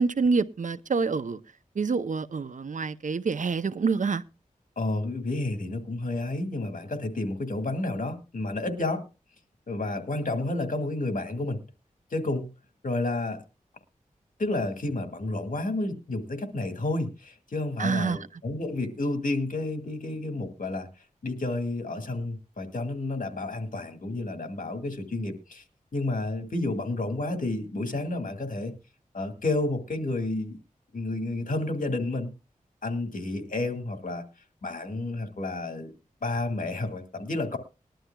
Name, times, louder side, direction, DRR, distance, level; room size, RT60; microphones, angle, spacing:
voice 1, 0.0-1.4 1.8-4.2 17.8-18.3, right 4 dB, 60° right, 0.6 m, -27 dB
voice 2, 4.8-9.0 9.7-11.6 12.1-12.5 12.8-13.4 14.4-20.9 21.2-25.6 25.9-28.7 29.1-30.6 30.9-32.3 32.8-34.2 34.6-35.9 36.2-37.6, left 2 dB, 65° left, 2.1 m, -30 dB
20.5 x 11.5 x 2.3 m
wide cardioid pair, 75°, 14 cm